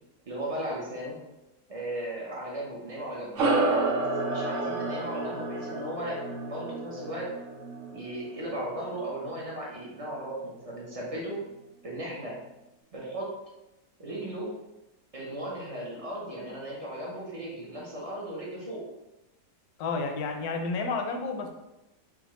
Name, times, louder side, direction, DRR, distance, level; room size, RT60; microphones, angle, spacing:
voice 1, 0.3-1.2 1.7-3.3 3.9-6.2 6.5-7.3 7.9-11.4 11.8-12.4 12.9-13.3 14.0-14.5 15.1-18.9, right 1 dB, 45° right, -5 dB, 0.4 m, -36 dB
sound 1, 3.4-8.1, right 2 dB, 65° right, 0.8 m, -30 dB
sound 2, 3.4-12.2, right 2 dB, 85° right, 1.5 m, -40 dB
voice 2, 19.8-21.5, left 4 dB, 75° left, 4 dB, 1.0 m, -30 dB
4.9 x 2.3 x 3.0 m, 0.97 s
omnidirectional pair, 1.7 m